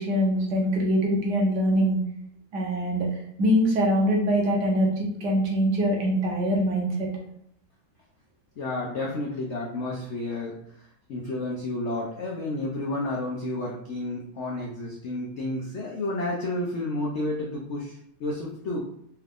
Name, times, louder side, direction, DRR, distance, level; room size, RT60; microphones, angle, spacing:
voice 1, 0.0-2.0 2.5-3.1 3.4-7.1, equal, 65° right, 0 dB, 1.4 m, -23 dB
voice 2, 8.6-18.8, left 2 dB, 90° left, -2 dB, 0.6 m, -31 dB
4.4 x 2.4 x 3.4 m, 0.72 s
omnidirectional pair, 2.0 m